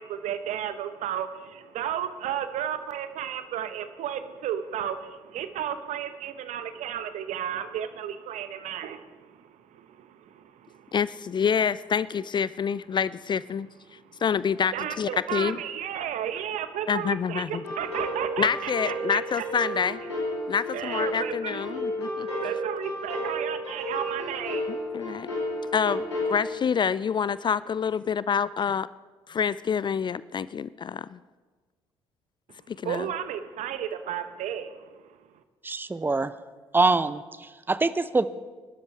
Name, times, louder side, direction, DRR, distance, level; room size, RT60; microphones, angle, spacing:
voice 1, 0.0-10.9 13.9-14.2 14.7-19.4 20.7-25.7 32.8-35.2, right 9 dB, 60° right, 11 dB, 1.0 m, -34 dB
voice 2, 10.9-13.7 14.2-15.6 16.9-17.6 18.4-20.0 20.5-22.3 24.7-25.3 25.7-28.9 29.3-31.2 32.7-33.1, left 7 dB, 35° left, 18 dB, 0.4 m, -27 dB
sound 1, 17.6-26.4, equal, 90° left, 2.6 m, -32 dB
voice 3, 35.6-36.3 36.7-38.3, right 3 dB, 15° right, 15 dB, 0.7 m, -24 dB
25.0 x 12.5 x 3.4 m, 1.4 s
figure-of-eight pair, 45°, 14 cm